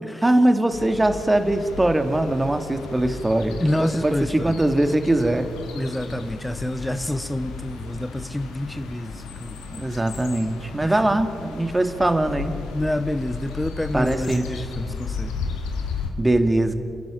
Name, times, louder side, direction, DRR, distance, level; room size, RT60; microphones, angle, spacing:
voice 1, 0.2-5.5 9.7-12.6 13.9-14.4 16.2-16.7, right 1 dB, 20° right, 8 dB, 2.2 m, -21 dB
sound 1, 0.7-16.1, left 4 dB, 85° left, 2.0 m, -35 dB
voice 2, 3.6-4.5 5.7-9.6 9.9-10.0 10.8-11.0 12.7-15.3, left 1 dB, 10° left, 10 dB, 1.1 m, -28 dB
30.0 x 11.0 x 8.9 m, 2.5 s
hypercardioid pair, 40°, 0 cm